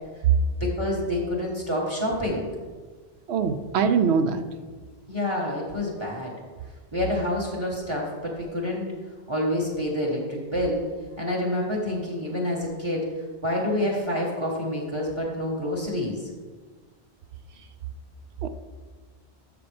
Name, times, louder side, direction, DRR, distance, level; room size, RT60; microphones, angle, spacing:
voice 1, 0.5-2.5 5.1-6.3 6.9-8.8 9.3-10.8 11.2-13.1 13.4-16.3, left 1 dB, 25° right, -2 dB, 1.4 m, -28 dB
voice 2, 3.3-4.4 18.4-18.5, right 6 dB, 85° right, 9 dB, 1.0 m, -22 dB
12.5 x 6.7 x 3.4 m, 1.4 s
omnidirectional pair, 1.1 m